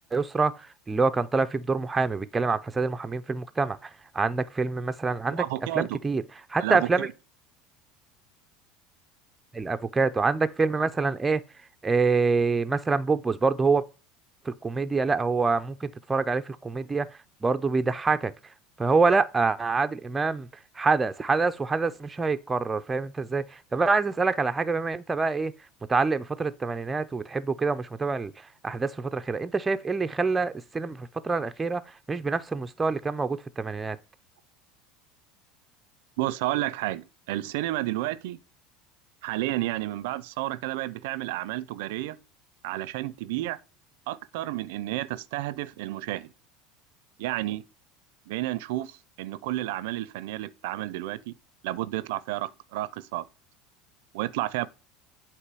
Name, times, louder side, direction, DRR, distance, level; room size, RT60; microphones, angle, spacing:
voice 1, 0.1-5.4 5.7-6.2 6.5-7.1 9.5-11.4 11.8-13.8 14.4-20.5 20.7-25.5 25.9-34.0, right 4 dB, 15° right, 0.4 m, -26 dB
voice 2, 5.4-6.0 6.6-7.1 36.2-38.4 39.2-42.2 42.6-43.6 44.1-46.3 47.2-47.6 48.3-51.3 51.6-53.3 54.1-54.7, right 16 dB, 80° right, 0.4 m, -31 dB
8.2 x 3.0 x 6.0 m
supercardioid pair, 130°, 0 cm